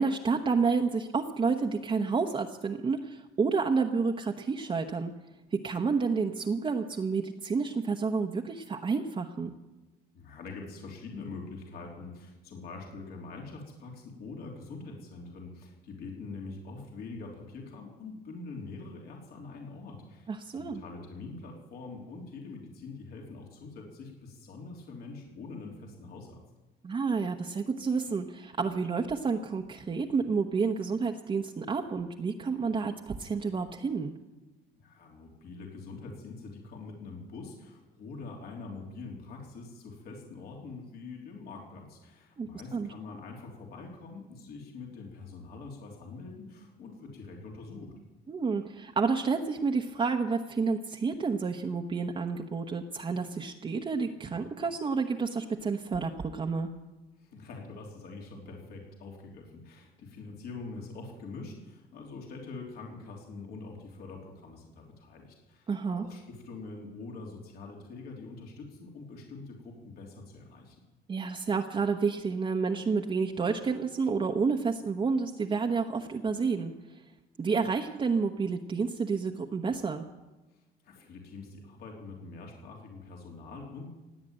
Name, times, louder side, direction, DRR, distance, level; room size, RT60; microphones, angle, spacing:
voice 1, 0.0-5.1 5.5-9.5 20.3-20.8 26.8-34.1 42.4-42.9 48.3-56.7 65.7-66.0 71.1-76.7 77.4-80.1, right 5 dB, 30° right, 2 dB, 1.0 m, -30 dB
voice 2, 10.1-26.4 34.7-47.9 57.2-70.8 80.8-83.9, left 3 dB, 65° left, 0 dB, 3.4 m, -44 dB
17.5 x 9.2 x 8.9 m, 1.1 s
cardioid pair, 110°, 17 cm